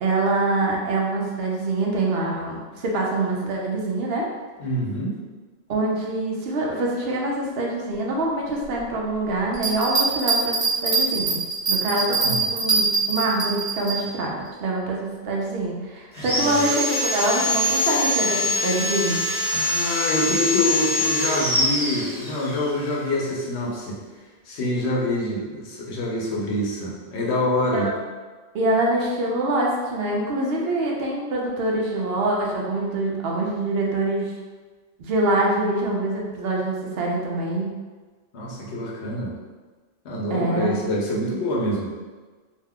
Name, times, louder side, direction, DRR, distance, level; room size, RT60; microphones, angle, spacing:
voice 1, 0.0-4.3 5.7-11.4 11.7-19.2 27.7-27.9 28.5-34.3 35.0-37.7 40.3-40.8, right 2 dB, 70° right, -2 dB, 0.8 m, -25 dB
voice 2, 4.6-5.2 12.2-12.4 16.2-16.5 19.5-24.0 24.5-27.9 38.3-39.3 40.0-41.9, left 1 dB, 80° left, -3 dB, 1.0 m, -26 dB
Bell, 9.5-14.0 14.5-14.6, right 4 dB, 45° right, 0.9 m, -23 dB
Sawing, 16.1-22.6, left 1 dB, 5° right, 0.9 m, -24 dB
2.7 x 2.2 x 3.5 m, 1.4 s
omnidirectional pair, 1.1 m